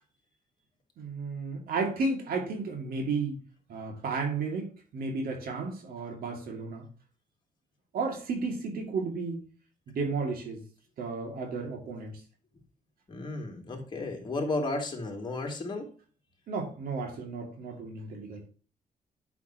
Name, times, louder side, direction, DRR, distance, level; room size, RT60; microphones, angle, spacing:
voice 1, 1.0-3.4 3.7-6.9 7.9-9.4 9.9-10.6 11.0-12.2 16.5-18.5, right 4 dB, 90° right, 2.3 m, -33 dB
voice 2, 13.1-15.9, left 2 dB, 30° left, 2.7 m, -33 dB
10.5 x 5.9 x 2.9 m
cardioid pair, 130°, 15 cm